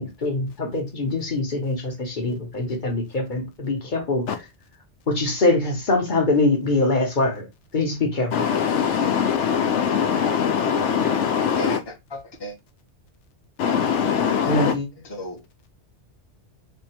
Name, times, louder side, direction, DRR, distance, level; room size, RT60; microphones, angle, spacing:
voice 1, 0.0-4.4 5.1-7.5 7.7-8.4 14.5-14.9, left 2 dB, 45° left, 1.2 m, -23 dB
voice 2, 8.3-11.8 13.6-14.7, left 7 dB, 80° left, 0.9 m, -22 dB
voice 3, 11.6-12.6 15.1-15.4, equal, 25° left, 0.9 m, -33 dB
3.5 x 2.2 x 4.2 m
omnidirectional pair, 1.2 m